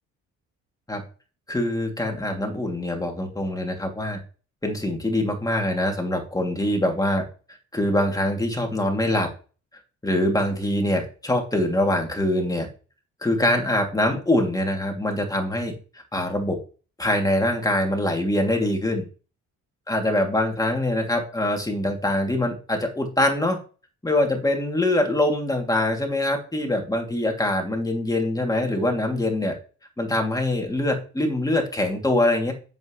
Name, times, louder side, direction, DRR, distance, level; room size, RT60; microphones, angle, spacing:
voice 1, 1.5-4.2 4.6-7.2 7.7-9.3 10.0-12.7 13.2-16.6 17.0-19.0 19.9-23.6 24.0-29.6 30.0-32.5, left 1 dB, 10° left, 2 dB, 2.5 m, -24 dB
7.8 x 7.5 x 3.1 m, 0.35 s
cardioid pair, 90°, 30 cm